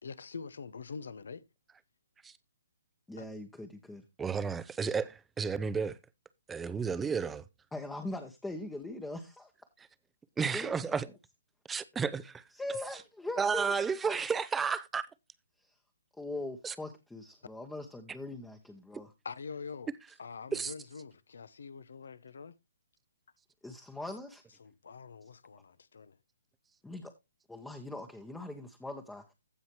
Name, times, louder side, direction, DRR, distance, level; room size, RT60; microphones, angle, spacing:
voice 1, 0.0-1.4 3.2-3.3 19.2-19.9 20.2-22.5 24.6-26.2, left 5 dB, 65° left, 0.9 m, -44 dB
voice 2, 3.1-4.0 7.7-9.5 10.5-11.0 12.5-13.7 14.0-14.2 15.6-15.8 16.1-19.1 23.6-24.4 26.8-27.1 27.5-29.3, left 2 dB, 5° left, 1.1 m, -41 dB
voice 3, 4.2-6.0 6.5-7.4 10.4-11.1 11.7-12.4 13.4-15.1 16.6-16.7 20.5-20.7, right 5 dB, 10° right, 0.6 m, -32 dB
15.5 x 5.5 x 3.0 m
figure-of-eight pair, 135°, 0 cm